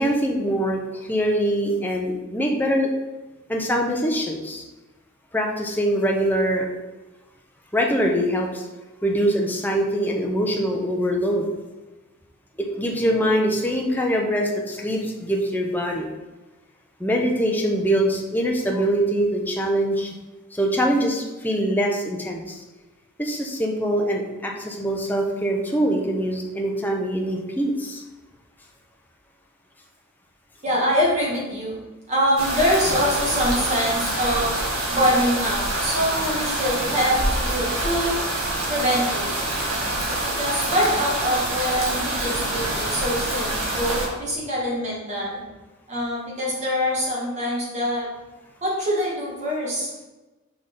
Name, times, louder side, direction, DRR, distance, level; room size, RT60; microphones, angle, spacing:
voice 1, 0.0-2.9 3.5-4.6 5.3-6.7 7.7-8.6 9.0-11.5 12.6-16.1 17.0-20.1 20.5-22.6 23.2-28.0, equal, 10° left, 0 dB, 0.8 m, -23 dB
voice 2, 30.6-31.8 32.1-34.5 34.9-38.2 38.7-39.3 39.9-45.4 45.9-48.1 48.6-50.1, equal, 35° right, -5 dB, 2.1 m, -24 dB
sound 1, 32.4-44.1, right 1 dB, 80° right, 1.7 m, -26 dB
6.2 x 5.0 x 3.8 m, 1.1 s
head